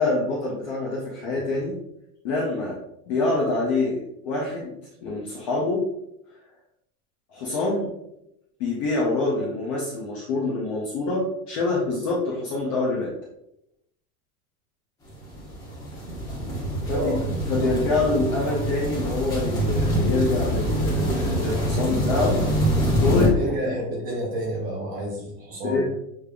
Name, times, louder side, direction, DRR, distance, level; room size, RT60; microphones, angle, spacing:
voice 1, 0.0-1.8 2.2-2.8 3.1-5.8 7.3-7.9 8.6-13.1 16.9-17.2 17.5-22.4 23.0-23.4 25.6-25.8, left 3 dB, 25° left, -4 dB, 0.4 m, -26 dB
sound 1, 15.1-23.3, equal, 10° left, 0.9 m, -25 dB
voice 2, 16.9-17.2 23.1-25.8, right 1 dB, 20° right, 0 dB, 0.6 m, -29 dB
6.6 x 3.3 x 2.2 m, 0.82 s
supercardioid pair, 165°, 44 cm